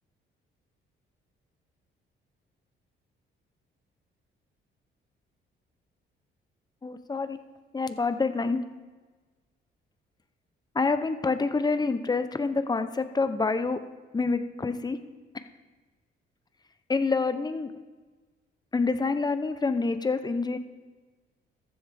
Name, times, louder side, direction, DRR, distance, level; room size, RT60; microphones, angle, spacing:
voice 1, 6.8-7.4 7.7-8.6 10.7-13.8 14.1-15.0 16.9-17.7 18.7-20.6, left 4 dB, 20° left, 10 dB, 0.7 m, -27 dB
14.0 x 7.4 x 3.4 m, 1.3 s
cardioid pair, 90°, 20 cm